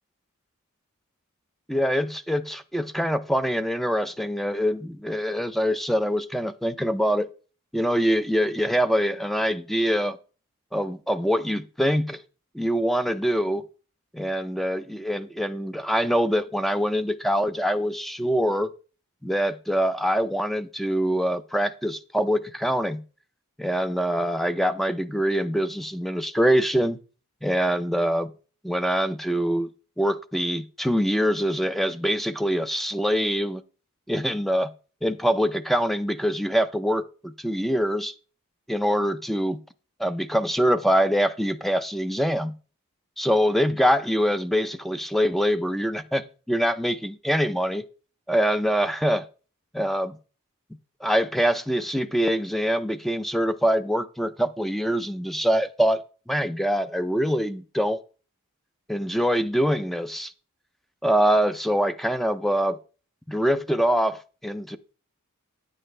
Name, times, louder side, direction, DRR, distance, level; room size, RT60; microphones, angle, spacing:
voice 1, 1.7-7.3 7.7-10.2 10.7-12.2 12.5-13.6 14.1-18.7 19.2-23.0 23.6-27.0 27.4-28.3 28.6-29.7 30.0-33.6 34.1-34.7 35.0-38.1 38.7-39.6 40.0-42.6 43.2-47.8 48.3-49.3 49.7-50.2 51.0-58.0 58.9-60.3 61.0-62.8 63.3-64.8, equal, ahead, 0.4 m, -24 dB
9.7 x 8.7 x 3.2 m
head